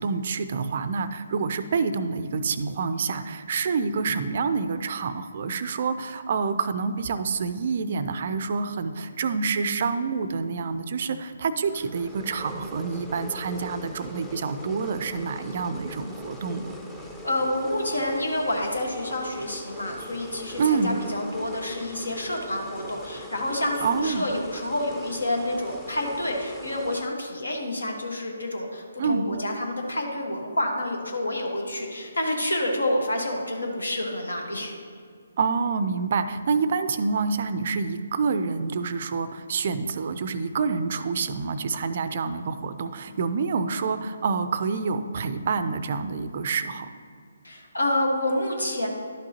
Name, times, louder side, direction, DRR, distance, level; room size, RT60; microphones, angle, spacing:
voice 1, 0.0-16.8 20.6-21.0 23.8-24.2 29.0-29.3 35.4-46.9, right 5 dB, 45° right, 12 dB, 0.4 m, -27 dB
sound 1, 11.6-27.1, equal, 5° left, 0.6 m, -41 dB
voice 2, 17.2-34.7 47.4-48.9, left 1 dB, 75° left, 2 dB, 1.4 m, -28 dB
11.0 x 6.1 x 2.9 m, 2.2 s
figure-of-eight pair, 140°, 0 cm